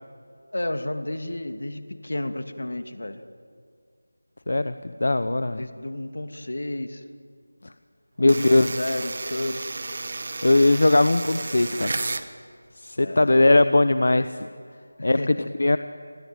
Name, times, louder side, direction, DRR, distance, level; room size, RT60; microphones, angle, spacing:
voice 1, 0.5-3.2 5.5-7.0 8.2-9.8 13.0-13.4 15.0-15.5, left 1 dB, 75° left, 7 dB, 2.7 m, -32 dB
voice 2, 4.5-5.6 8.2-8.8 10.4-11.9 12.8-14.5 15.0-15.8, left 2 dB, 55° left, 11 dB, 0.9 m, -20 dB
sound 1, 8.3-12.3, right 3 dB, 35° right, 1.2 m, -32 dB
28.5 x 21.5 x 9.2 m, 2.1 s
figure-of-eight pair, 180°, 0 cm